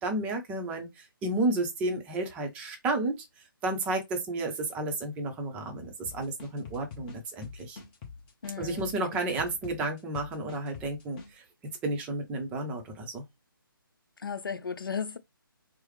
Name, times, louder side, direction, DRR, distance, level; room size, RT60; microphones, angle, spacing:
voice 1, 0.0-3.2 3.6-7.8 8.6-11.4 11.8-13.2, right 2 dB, 10° right, 0.6 m, -32 dB
sound 1, 6.1-11.3, left 5 dB, 20° left, 0.8 m, -45 dB
voice 2, 8.4-8.9 14.2-15.2, left 6 dB, 65° left, 0.6 m, -35 dB
4.6 x 2.0 x 3.1 m
figure-of-eight pair, 145°, 12 cm